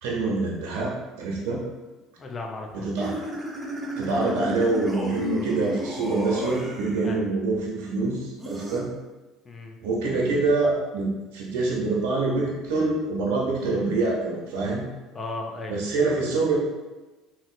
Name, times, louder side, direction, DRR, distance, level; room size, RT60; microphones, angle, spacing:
voice 1, 0.0-0.9 1.2-1.6 2.7-3.1 4.0-8.9 9.8-14.9 15.7-16.6, right 3 dB, 80° right, -2 dB, 0.6 m, -25 dB
voice 2, 2.2-3.1 7.0-7.3 9.4-9.8 15.1-15.8, left 2 dB, 35° left, 1 dB, 0.6 m, -36 dB
sound 1, 3.0-7.2 8.4-8.8, equal, 20° right, 0.7 m, -33 dB
3.0 x 2.7 x 2.5 m, 1.1 s
hypercardioid pair, 75°, 0 cm